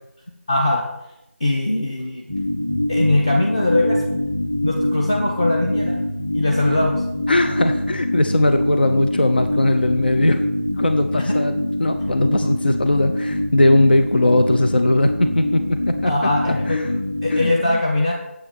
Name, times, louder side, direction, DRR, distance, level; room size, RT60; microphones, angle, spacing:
voice 1, 0.5-0.8 1.4-2.2 2.9-4.1 4.6-6.0 6.3-7.0 16.1-16.8 17.2-18.1, left 2 dB, 25° left, -2 dB, 1.3 m, -21 dB
sound 1, 2.3-17.5, left 1 dB, 5° left, 1.0 m, -24 dB
voice 2, 7.3-10.4 10.8-16.1 16.4-16.9 17.3-17.8, left 1 dB, 45° left, 6 dB, 0.8 m, -19 dB
8.9 x 7.7 x 8.3 m, 0.86 s
figure-of-eight pair, 170°, 8 cm